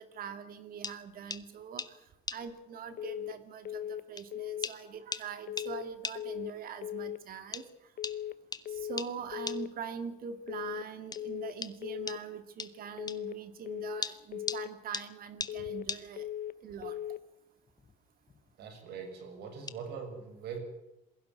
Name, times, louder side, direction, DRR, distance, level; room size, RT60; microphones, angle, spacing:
voice 1, 0.0-2.0 2.3-7.6 8.7-16.3 16.6-17.0, right 7 dB, 60° right, 10 dB, 2.3 m, -43 dB
sound 1, 0.8-1.0 1.3-1.4 1.8-1.9 2.3-2.4 3.4-3.5 4.2-4.3 4.6-4.8 5.1-5.3 5.6-5.7 6.0-6.2 7.5-7.7 8.0-8.2 8.5-8.6 9.0-9.1 9.5-9.6 11.1-11.2 11.6-11.7 12.1-12.2 12.6-12.7 13.1-13.2 14.0-14.6 14.9-15.1 15.4-15.6 15.9-16.0 17.7-17.9 18.2-18.5 19.7-19.8, left 4 dB, 25° left, 1.1 m, -38 dB
sound 2, 3.0-3.4 3.7-4.1 4.3-4.7 5.5-5.9 6.2-6.6 6.8-7.2 8.0-8.4 8.7-9.1 9.3-9.7 10.5-10.9 11.2-11.6 11.8-12.2 13.0-13.4 13.7-14.1 14.3-14.7 15.5-15.9 16.2-16.6 16.8-17.2, left 11 dB, 60° left, 0.9 m, -38 dB
voice 2, 18.6-20.6, right 6 dB, 75° right, 7 dB, 6.6 m, -42 dB
22.0 x 16.0 x 9.5 m, 0.90 s
cardioid pair, 110°, 17 cm